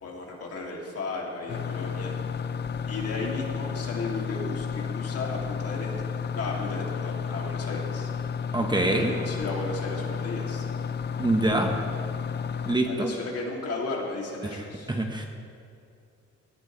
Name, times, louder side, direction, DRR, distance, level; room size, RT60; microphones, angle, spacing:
voice 1, 0.0-2.1 2.9-6.1 6.3-8.1 8.9-10.6 12.8-14.9, left 3 dB, 55° left, -2 dB, 2.7 m, -34 dB
sound 1, 1.5-12.8, left 6 dB, 35° left, 0.5 m, -32 dB
voice 2, 8.5-9.1 11.2-11.7 12.6-13.1 14.4-15.2, right 2 dB, 15° right, 2 dB, 1.2 m, -25 dB
18.0 x 11.5 x 3.3 m, 2.4 s
cardioid pair, 90°, 30 cm